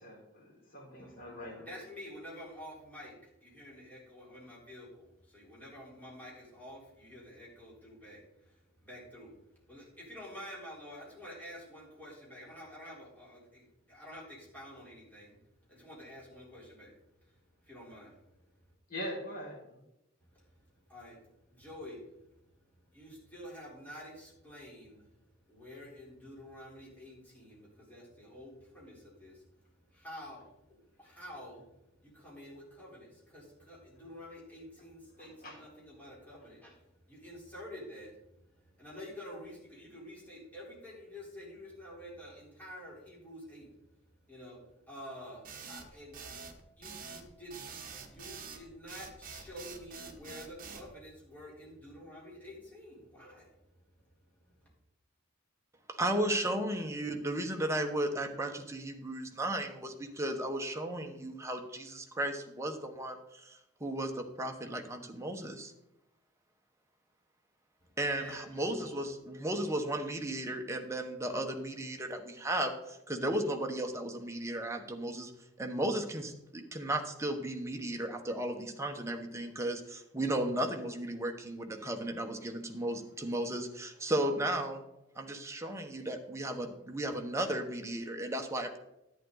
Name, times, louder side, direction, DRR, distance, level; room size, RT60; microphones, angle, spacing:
voice 1, 0.0-1.7 18.9-19.8 35.2-35.6, equal, 45° left, -4 dB, 4.4 m, -43 dB
voice 2, 1.0-9.3 9.7-15.4 15.7-16.9 17.2-17.3 17.6-18.2 20.3-20.4 20.9-21.2 21.5-22.3 22.9-25.1 25.5-29.5 29.7-31.7 32.0-36.8 37.1-38.2 38.6-43.7 44.3-44.6 44.9-46.2 46.8-47.7 48.0-53.5 53.9-54.1 54.6-54.7 68.2-69.1, left 1 dB, 10° left, -6 dB, 3.9 m, -49 dB
sound 1, 45.4-50.9, right 5 dB, 40° right, 1.3 m, -46 dB
voice 3, 55.9-65.7 68.0-75.3 75.6-84.8 85.2-88.8, right 1 dB, 15° right, 3 dB, 1.1 m, -35 dB
11.0 x 9.1 x 4.0 m, 0.87 s
head